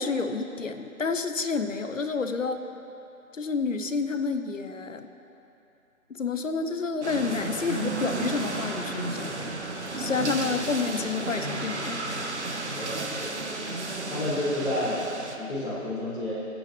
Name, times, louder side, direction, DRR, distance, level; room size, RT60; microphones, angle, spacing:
voice 1, 0.0-2.6 3.3-5.1 6.1-9.5 10.0-12.1, left 4 dB, 60° left, 8 dB, 0.9 m, -29 dB
sound 1, 7.0-15.4, right 2 dB, 50° right, 1.1 m, -33 dB
voice 2, 12.7-13.3 14.1-15.1 15.4-16.4, left 1 dB, ahead, -24 dB, 2.6 m, -30 dB
26.0 x 9.0 x 3.4 m, 2.9 s
figure-of-eight pair, 175°, 43 cm